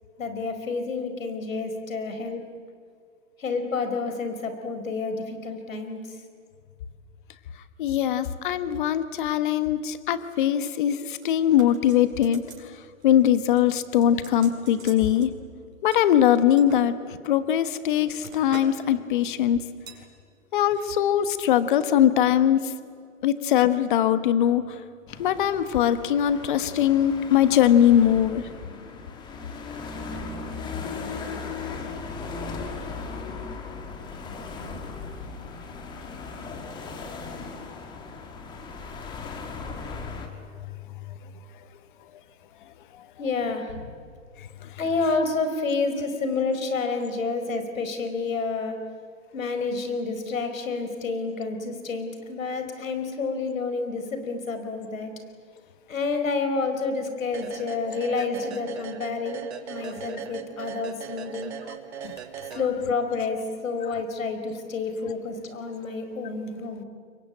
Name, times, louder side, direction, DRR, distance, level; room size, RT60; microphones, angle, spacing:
voice 1, 0.2-2.4 3.4-6.2 43.2-43.9 44.8-48.8 49.3-55.1 55.9-61.5 62.5-66.8, left 4 dB, 75° left, 7 dB, 4.9 m, -29 dB
voice 2, 7.8-12.4 13.0-15.3 15.8-19.6 20.5-22.7 23.2-24.8 25.2-28.9 40.0-40.1 40.6-40.7 41.1-41.2 44.4-44.7 62.0-62.2, left 10 dB, 35° left, 12 dB, 1.3 m, -22 dB
sound 1, 11.2-12.7 13.0-13.3 13.6-15.3 15.9-16.8 17.5-18.8 19.1-19.4 19.9-20.1 20.6-20.9 21.2-21.3, right 5 dB, 70° right, 6.1 m, -46 dB
sound 2, 25.1-40.3, left 4 dB, 10° left, 1.5 m, -37 dB
sound 3, 57.3-63.1, right 9 dB, 50° right, 2.3 m, -39 dB
27.0 x 23.0 x 9.0 m, 2.1 s
hypercardioid pair, 160°, 41 cm